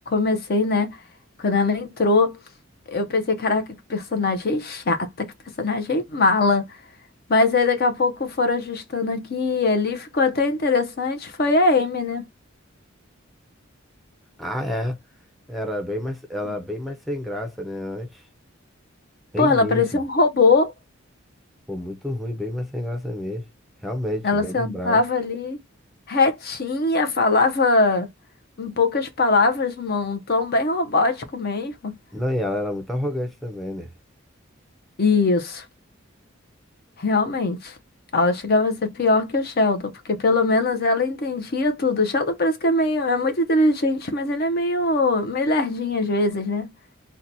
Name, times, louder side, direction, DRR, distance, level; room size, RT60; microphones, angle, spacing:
voice 1, 0.1-1.0 1.4-2.4 2.9-6.8 7.3-12.3 19.4-20.7 24.2-25.6 26.1-28.1 28.6-31.9 35.0-35.6 37.0-37.7 38.1-46.7, left 3 dB, 50° left, 0.6 m, -21 dB
voice 2, 14.4-15.0 15.5-18.3 19.3-20.0 21.7-23.5 23.8-25.0 32.1-33.9, left 1 dB, ahead, 0.5 m, -29 dB
2.8 x 2.2 x 3.9 m
head